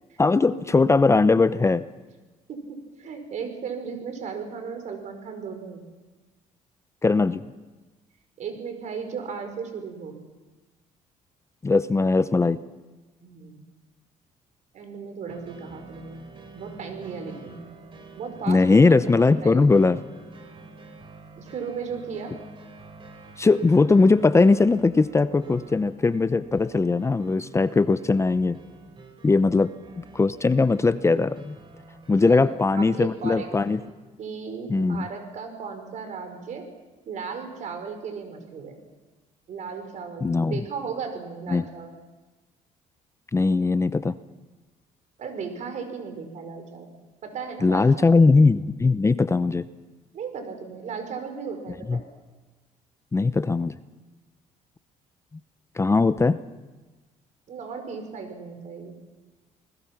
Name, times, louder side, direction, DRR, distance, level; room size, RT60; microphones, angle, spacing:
voice 1, 0.2-1.8 7.0-7.5 11.6-12.6 18.5-20.0 23.4-28.6 29.2-29.7 30.1-31.6 32.1-33.8 34.7-35.1 40.2-40.5 41.5-41.6 43.3-44.1 47.6-49.6 51.9-52.0 53.1-53.7 55.8-56.4, left 3 dB, 20° left, 13 dB, 0.7 m, -20 dB
voice 2, 2.5-5.9 8.4-10.2 13.2-13.6 14.7-16.2 16.5-17.6 18.1-18.9 19.2-19.6 21.4-22.3 32.2-33.5 34.2-36.6 37.1-38.8 39.5-41.9 45.2-46.9 47.2-48.1 50.1-52.0 57.5-59.0, right 5 dB, 60° right, 6 dB, 4.8 m, -35 dB
sound 1, 15.3-33.9, right 3 dB, 40° right, 3.4 m, -48 dB
27.5 x 20.0 x 5.9 m, 1.2 s
cardioid pair, 95°, 14 cm